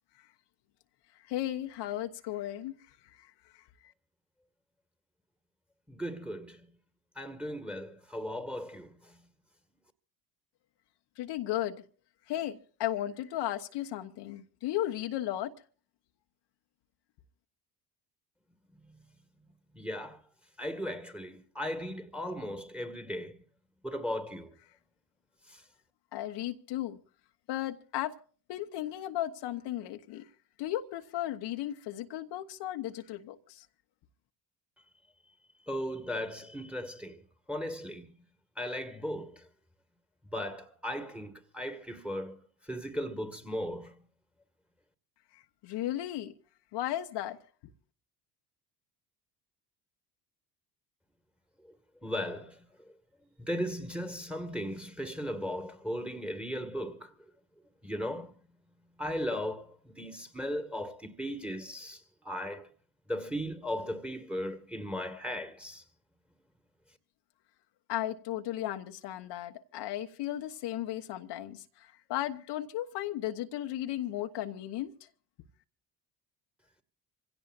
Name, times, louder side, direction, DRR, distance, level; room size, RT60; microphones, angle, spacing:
voice 1, 1.3-2.8 3.1-3.6 11.2-11.8 12.3-15.5 26.1-27.0 27.5-28.1 28.5-30.3 30.6-33.7 45.6-46.3 46.7-47.4 67.9-74.9, left 13 dB, 55° left, 1.1 m, -35 dB
voice 2, 5.9-6.7 7.2-9.2 18.9-19.0 19.7-20.2 20.6-23.4 23.8-24.5 35.7-37.2 37.5-38.1 38.6-39.5 40.3-44.0 52.0-52.7 53.4-57.1 57.8-58.3 59.0-62.7 63.1-65.8, equal, ahead, 1.9 m, -37 dB
26.0 x 17.0 x 2.6 m
hypercardioid pair, 60°, 49 cm